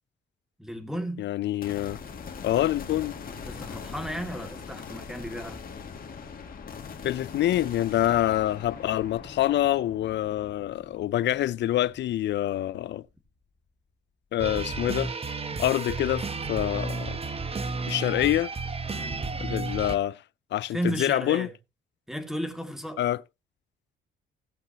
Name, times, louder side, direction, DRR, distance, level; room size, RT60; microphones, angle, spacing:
voice 1, 0.6-1.3 3.4-5.6 18.9-19.2 20.7-21.5 22.1-23.0, right 1 dB, ahead, 2.2 m, -34 dB
voice 2, 1.2-2.0 2.4-3.2 7.0-13.0 14.3-15.1 15.6-17.2 17.9-18.5 19.4-20.2 20.5-21.5 23.0-23.2, left 13 dB, 65° left, 0.5 m, -26 dB
sound 1, 1.6-13.0, left 5 dB, 45° left, 2.1 m, -42 dB
sound 2, 14.4-20.0, right 4 dB, 30° right, 1.1 m, -32 dB
17.5 x 7.8 x 2.8 m
cardioid pair, 90°, 20 cm